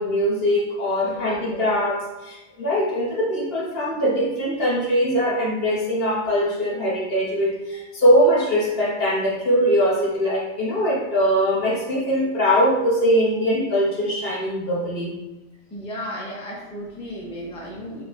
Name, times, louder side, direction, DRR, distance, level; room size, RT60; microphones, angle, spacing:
voice 1, 0.0-15.1, equal, 55° left, -5 dB, 1.0 m, -21 dB
voice 2, 1.0-1.7 15.7-18.0, equal, 10° left, -5 dB, 0.4 m, -34 dB
4.8 x 2.1 x 2.4 m, 1.1 s
omnidirectional pair, 1.3 m